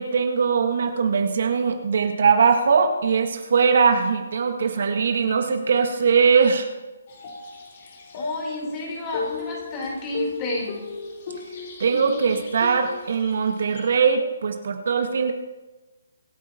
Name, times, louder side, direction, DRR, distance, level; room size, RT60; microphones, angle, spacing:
voice 1, 0.0-6.7 11.8-15.3, right 5 dB, 60° right, 6 dB, 1.8 m, -21 dB
sound 1, 7.1-14.0, left 4 dB, 45° left, 4.2 m, -35 dB
voice 2, 8.1-10.7, left 1 dB, 25° left, -2 dB, 4.9 m, -30 dB
25.5 x 9.3 x 4.5 m, 1.1 s
hypercardioid pair, 150°, 0 cm